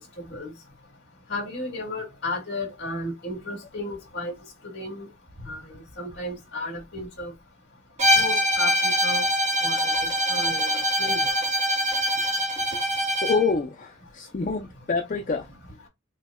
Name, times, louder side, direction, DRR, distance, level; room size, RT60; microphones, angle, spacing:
voice 1, 1.3-4.3 4.7-5.1 5.5-7.3 8.2-9.2 9.6-9.9 10.3-10.7 11.0-11.3, left 2 dB, 55° left, 2.0 m, -33 dB
Bowed string instrument, 8.0-13.5, equal, 35° right, 1.0 m, -23 dB
voice 2, 13.2-15.5, left 4 dB, 40° left, 0.4 m, -27 dB
6.2 x 2.1 x 2.3 m
head